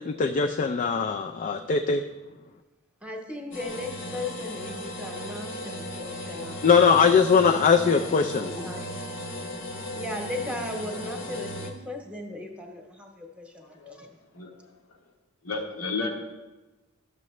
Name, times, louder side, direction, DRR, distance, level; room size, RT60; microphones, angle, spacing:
voice 1, 0.0-2.0 6.6-8.5, left 5 dB, 40° left, 4 dB, 0.3 m, -21 dB
voice 2, 3.0-6.6 8.5-8.9 9.9-14.1, left 1 dB, 5° right, 2 dB, 1.0 m, -37 dB
sound 1, 3.5-11.7, left 1 dB, 60° left, 0.9 m, -36 dB
voice 3, 13.6-14.0 14.3-14.5 15.4-16.1, left 3 dB, 90° left, 1 dB, 1.2 m, -32 dB
11.5 x 6.6 x 3.1 m, 1.1 s
head